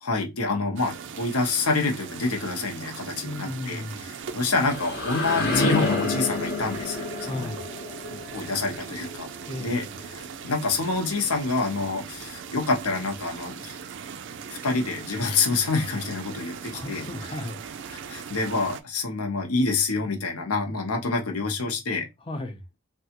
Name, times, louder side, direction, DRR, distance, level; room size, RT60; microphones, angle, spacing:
voice 1, 0.0-3.8 4.3-7.5 8.3-9.3 9.6-9.8 10.1-13.8 14.5-17.0 17.9-22.1, left 3 dB, 80° left, 0.8 m, -27 dB
sound 1, 0.8-18.8, right 7 dB, 55° right, 0.3 m, -40 dB
voice 2, 3.2-4.1 7.2-7.7 9.5-10.0 16.7-17.6 17.9-18.0 22.2-22.6, left 1 dB, 25° left, 0.5 m, -35 dB
sound 2, 4.3-10.0, left 3 dB, 50° left, 0.9 m, -29 dB
3.4 x 2.3 x 2.8 m
head